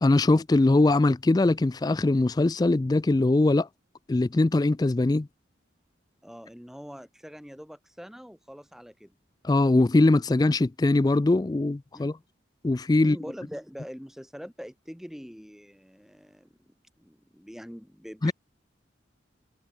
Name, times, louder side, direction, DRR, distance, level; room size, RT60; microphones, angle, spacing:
voice 1, 0.0-3.7 4.1-5.3 9.4-12.2 12.6-13.2 18.2-18.3, left 2 dB, 20° left, 0.3 m, -21 dB
voice 2, 6.2-9.1 11.9-12.1 13.0-18.3, equal, ahead, 3.6 m, -44 dB
head